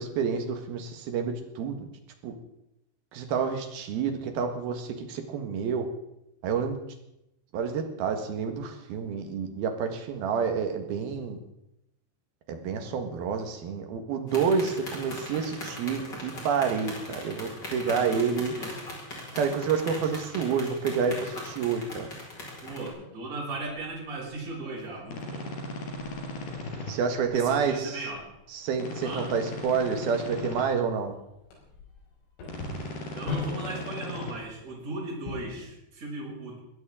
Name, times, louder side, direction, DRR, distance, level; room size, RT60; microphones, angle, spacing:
voice 1, 0.0-1.9 2.2-2.3 3.1-5.9 6.4-6.8 7.5-11.4 12.5-18.5 19.3-22.1 26.9-28.0 28.5-31.2, right 6 dB, 65° right, 6 dB, 2.8 m, -29 dB
sound 1, 14.3-22.9, left 1 dB, 20° left, 4.9 m, -40 dB
voice 2, 18.0-18.8 22.6-25.5 27.3-28.3 29.0-29.3 33.1-36.6, right 2 dB, 35° right, -4 dB, 6.7 m, -37 dB
sound 2, 24.1-35.7, left 4 dB, 85° left, 7.9 m, -43 dB
sound 3, 25.1-26.9 28.7-30.6 32.4-34.3, left 2 dB, 55° left, 5.6 m, -37 dB
22.0 x 16.0 x 3.8 m, 0.86 s
omnidirectional pair, 5.8 m